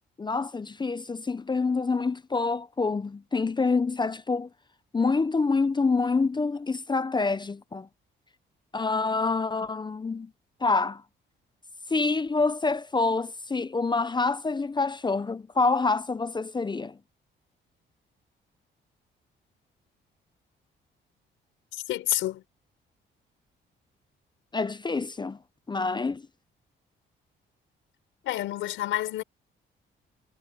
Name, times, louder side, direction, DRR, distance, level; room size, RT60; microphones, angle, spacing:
voice 1, 0.2-4.5 4.9-7.9 8.7-10.3 10.6-11.0 11.9-17.0 24.5-25.4 25.7-26.2, left 4 dB, 20° left, 0.7 m, -27 dB
voice 2, 21.7-22.4 28.2-29.2, left 14 dB, 90° left, 4.9 m, -29 dB
cardioid pair, 90°, 20 cm